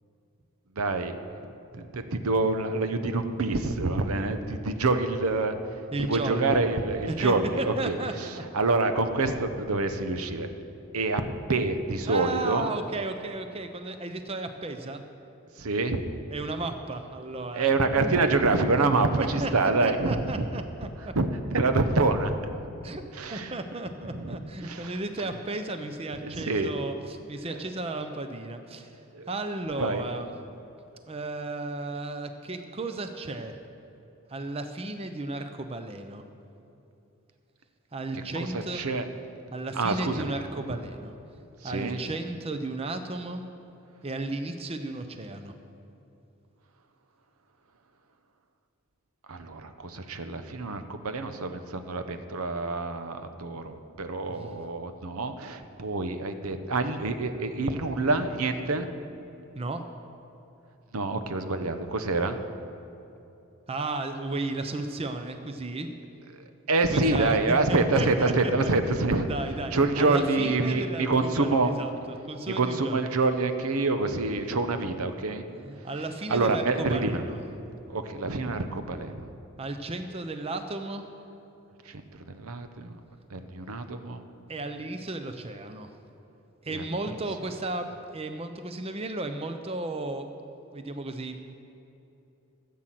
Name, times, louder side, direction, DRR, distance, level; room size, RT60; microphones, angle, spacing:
voice 1, 0.8-1.2 1.7-5.6 6.1-8.0 8.5-10.5 10.9-11.2 11.5-12.7 15.6-16.0 17.5-20.5 21.2-22.4 23.1-23.6 24.1-24.9 26.2-26.7 29.1-29.3 29.8-30.0 38.1-39.1 39.7-40.3 41.6-42.0 49.3-58.9 60.9-62.4 66.3-69.3 69.7-71.7 72.5-75.4 76.3-77.2 77.9-79.3 81.9-82.9 83.3-84.2 86.7-87.2, right 3 dB, 80° right, 8 dB, 0.8 m, -27 dB
voice 2, 5.9-6.6 7.1-8.3 12.1-15.0 16.3-18.1 18.5-18.9 19.2-19.5 19.8-21.1 22.8-23.0 23.3-29.0 29.3-30.3 31.1-33.6 34.3-36.2 37.9-38.8 39.5-41.1 41.6-43.4 44.0-45.5 54.3-54.6 59.6-59.8 63.7-65.9 66.9-67.4 67.7-68.7 69.2-73.0 75.5-77.4 79.6-81.1 84.5-85.9 86.6-90.3 90.7-91.5, right 2 dB, 25° right, 7 dB, 0.6 m, -34 dB
14.0 x 7.6 x 7.6 m, 2.8 s
head